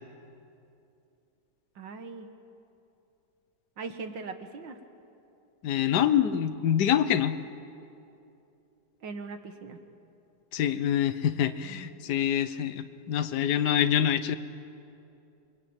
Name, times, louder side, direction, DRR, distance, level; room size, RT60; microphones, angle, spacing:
voice 1, 1.8-2.3 3.8-4.8 9.0-9.8, right 4 dB, 80° right, 7 dB, 2.2 m, -40 dB
voice 2, 5.6-7.4 10.5-14.4, left 9 dB, 65° left, 11 dB, 1.4 m, -26 dB
28.5 x 22.0 x 8.9 m, 2.7 s
omnidirectional pair, 2.0 m